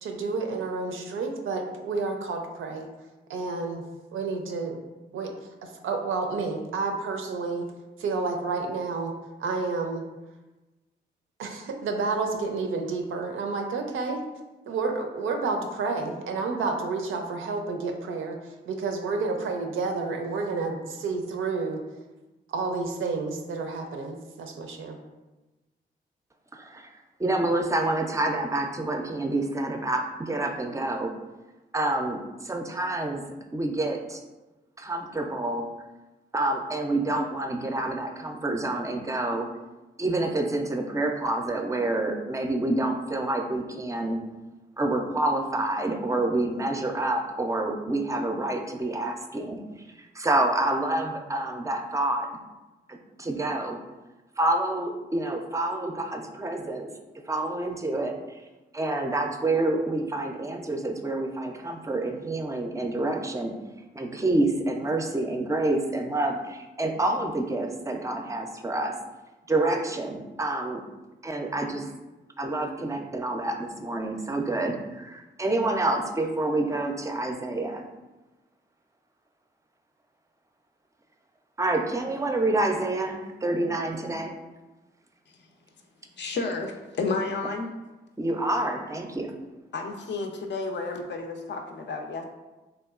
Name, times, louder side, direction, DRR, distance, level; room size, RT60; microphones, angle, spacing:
voice 1, 0.0-2.9 3.3-3.8 4.1-4.8 5.1-5.3 5.6-7.7 8.0-9.1 9.4-10.0 11.4-14.2 14.7-18.4 18.7-21.8 22.5-25.0, right 4 dB, 75° right, 4 dB, 0.4 m, -30 dB
voice 2, 26.5-26.9 27.2-31.1 31.7-33.2 33.5-34.2 34.8-35.7 36.3-39.5 40.0-44.2 44.8-49.6 50.0-52.3 52.9-53.8 54.4-56.9 57.3-58.4 58.7-63.5 64.0-69.0 69.5-70.8 71.2-71.9 72.4-77.9 81.6-84.4 88.2-89.3, right 2 dB, 15° right, 4 dB, 0.4 m, -28 dB
voice 3, 86.2-87.7 89.7-92.2, left 3 dB, 60° left, 4 dB, 0.4 m, -31 dB
2.8 x 2.3 x 2.3 m, 1.1 s
supercardioid pair, 45°, 21 cm